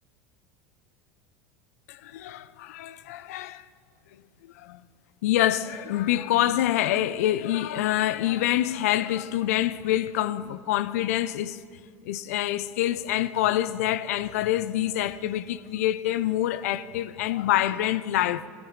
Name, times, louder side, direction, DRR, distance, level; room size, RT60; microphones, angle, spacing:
voice 1, 1.9-3.6 4.6-4.8 5.2-11.6 12.0-18.5, left 13 dB, 75° left, 0.5 m, -26 dB
16.5 x 16.5 x 3.1 m
hypercardioid pair, 90°, 8 cm